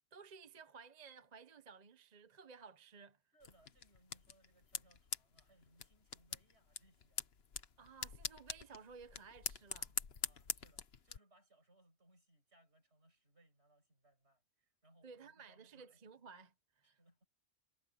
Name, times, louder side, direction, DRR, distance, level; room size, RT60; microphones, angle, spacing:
voice 1, 0.1-3.2 7.8-9.9 15.0-17.0, right 5 dB, 40° right, 0.9 m, -56 dB
voice 2, 3.3-7.3 10.2-16.0 16.8-17.2, right 1 dB, 65° right, 6.7 m, -70 dB
sound 1, 3.4-11.2, left 6 dB, 60° left, 1.4 m, -45 dB
omnidirectional pair, 1.2 m